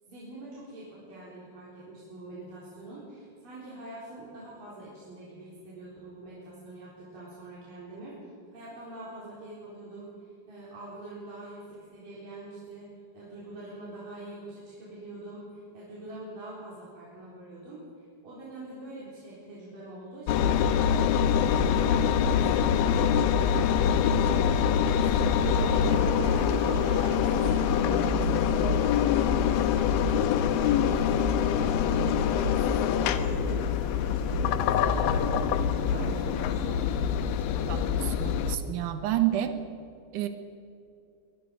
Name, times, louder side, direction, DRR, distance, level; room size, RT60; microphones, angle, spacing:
voice 1, 0.1-8.1 8.5-12.9 13.1-25.7 26.4-36.9, right 1 dB, 50° right, -7 dB, 5.5 m, -45 dB
Engine, 20.3-38.6, left 8 dB, 85° left, 2.0 m, -25 dB
sound 1, 25.4-37.1, right 12 dB, 90° right, 1.8 m, -38 dB
voice 2, 37.7-39.5 40.1-40.3, right 13 dB, 70° right, 8 dB, 1.9 m, -29 dB
23.0 x 21.5 x 5.3 m, 2.4 s
omnidirectional pair, 5.2 m